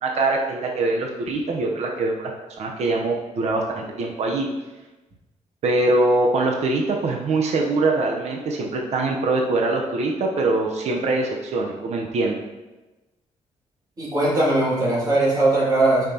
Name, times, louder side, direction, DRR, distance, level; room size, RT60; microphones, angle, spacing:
voice 1, 0.0-2.3 2.6-4.5 5.6-12.4, right 2 dB, 60° right, 1 dB, 0.9 m, -23 dB
voice 2, 14.0-16.1, right 2 dB, 30° right, -6 dB, 2.6 m, -19 dB
8.7 x 5.9 x 2.9 m, 1.1 s
wide cardioid pair, 155°, 13 cm